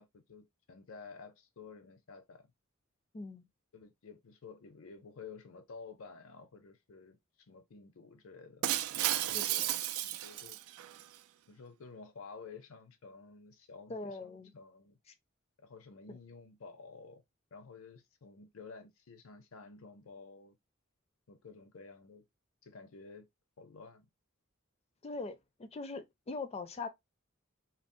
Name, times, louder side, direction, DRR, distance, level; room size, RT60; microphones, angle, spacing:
voice 1, 0.0-2.5 3.7-8.7 8.9-9.7 10.0-10.6 11.5-15.0 15.6-17.2 17.5-20.6 21.3-22.2 22.6-23.3 23.6-24.1, left 4 dB, 75° left, 0.6 m, -52 dB
voice 2, 3.1-3.5 9.3-9.5 13.9-14.5 16.1-16.2 25.0-26.9, left 3 dB, 30° left, 0.4 m, -41 dB
Shatter, 8.6-11.0, right 13 dB, 90° right, 0.3 m, -33 dB
4.0 x 2.0 x 2.5 m
head